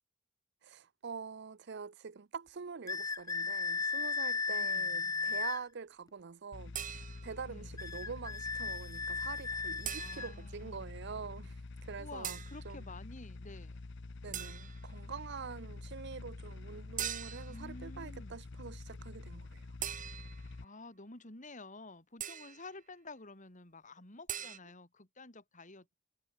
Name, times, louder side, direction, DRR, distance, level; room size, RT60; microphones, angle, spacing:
voice 1, 0.6-12.4 12.6-12.9 14.2-19.7, right 5 dB, 55° right, 0.6 m, -45 dB
sound 1, 2.9-5.6 7.8-10.3, left 4 dB, 15° left, 0.4 m, -35 dB
voice 2, 4.5-5.5 7.5-7.9 10.0-10.8 12.0-13.8 17.5-18.4 20.6-26.0, left 2 dB, 40° left, 3.9 m, -51 dB
sound 2, 6.5-20.6, left 3 dB, 60° left, 0.8 m, -47 dB
sound 3, 6.7-7.4 9.8-10.5 12.2-12.6 14.3-14.9 17.0-17.6 19.8-20.5 22.2-22.7 24.3-24.6, right 10 dB, 40° right, 1.5 m, -41 dB
head